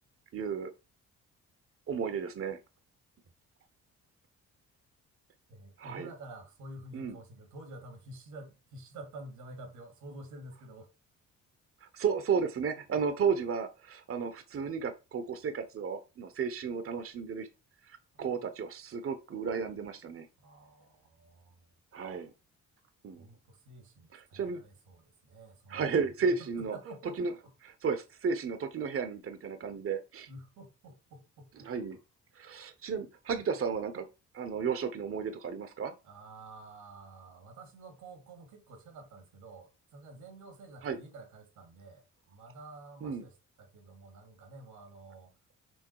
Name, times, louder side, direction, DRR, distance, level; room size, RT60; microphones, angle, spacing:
voice 1, 0.3-0.7 1.9-2.6 5.8-6.1 6.9-7.2 11.8-17.5 17.8-20.3 21.9-22.3 23.0-23.3 24.1-24.6 25.7-26.8 27.2-27.3 27.8-30.3 31.6-32.0 32.3-34.1 34.3-35.9 40.8-41.0 43.0-43.2, right 6 dB, 45° right, 0.9 m, -33 dB
voice 2, 5.5-10.9 18.2-18.5 20.4-21.8 23.2-27.2 27.4-27.5 30.3-31.7 36.0-45.3, right 2 dB, 90° right, 2.5 m, -50 dB
6.4 x 4.0 x 4.7 m
cardioid pair, 90°, 30 cm